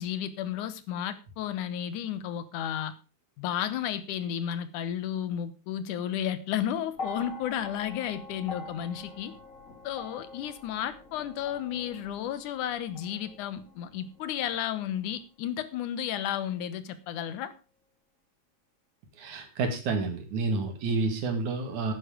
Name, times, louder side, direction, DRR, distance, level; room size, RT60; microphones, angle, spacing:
voice 1, 0.0-2.9 3.4-9.4 9.8-17.5, left 10 dB, 85° left, 13 dB, 2.5 m, -33 dB
sound 1, 6.9-15.3 16.3-16.4, left 3 dB, 30° left, 1.7 m, -45 dB
voice 2, 19.2-21.9, right 3 dB, 75° right, 5 dB, 3.6 m, -29 dB
10.0 x 9.8 x 5.0 m, 0.32 s
omnidirectional pair, 3.5 m